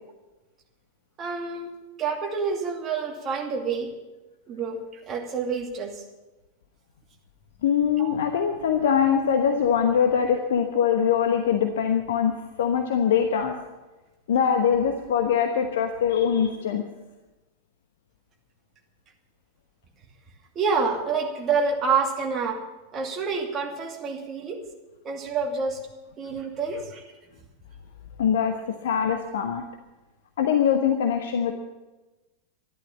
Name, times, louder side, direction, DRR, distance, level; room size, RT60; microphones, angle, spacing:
voice 1, 1.2-1.7 2.0-3.9 4.5-4.8 5.1-6.0 8.0-8.1 20.5-22.6 22.9-24.6 25.0-25.8 26.2-27.0, right 5 dB, 25° right, 1 dB, 2.6 m, -27 dB
voice 2, 7.6-13.5 14.3-16.8 28.2-29.6 30.4-31.5, left 8 dB, 60° left, 5 dB, 1.1 m, -23 dB
13.5 x 11.5 x 7.2 m, 1.1 s
figure-of-eight pair, 90°, 0 cm